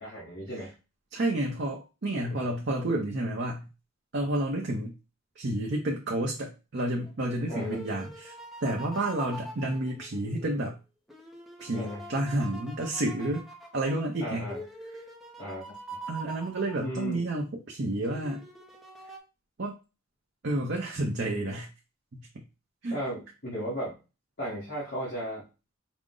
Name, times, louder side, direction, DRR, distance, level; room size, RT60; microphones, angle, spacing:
voice 1, 0.0-0.7 2.1-2.4 7.5-7.8 11.7-12.0 14.2-14.6 15.4-15.6 16.8-17.2 22.9-23.9 24.4-25.4, equal, 55° left, -7 dB, 1.3 m, -35 dB
voice 2, 1.1-3.7 4.1-4.9 5.4-8.3 8.6-10.8 11.6-13.5 13.7-14.5 16.1-18.4 19.6-19.8 20.4-21.7 22.8-23.0, right 1 dB, 55° right, -1 dB, 0.6 m, -30 dB
sound 1, 7.0-10.6 11.1-17.3 18.0-19.2, equal, ahead, 0.5 m, -44 dB
4.9 x 2.0 x 3.7 m, 0.30 s
head